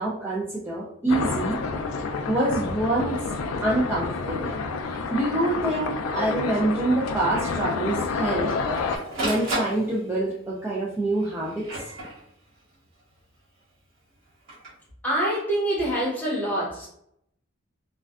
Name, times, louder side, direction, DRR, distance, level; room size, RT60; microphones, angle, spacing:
voice 1, 0.0-1.6 2.3-3.2 3.6-4.5 5.1-8.5 9.2-11.9, right 2 dB, 10° right, -6 dB, 0.3 m, -26 dB
sound 1, 1.1-9.0, left 4 dB, 85° left, 0.3 m, -29 dB
Printer, 5.7-5.8 6.1-6.2 6.6-6.7 7.3-7.6 8.2-10.3 11.1-12.6 14.3-14.7, right 1 dB, 60° right, 1.0 m, -33 dB
voice 2, 15.0-16.9, right 1 dB, 10° left, -6 dB, 0.8 m, -25 dB
2.4 x 2.1 x 2.3 m, 0.72 s
head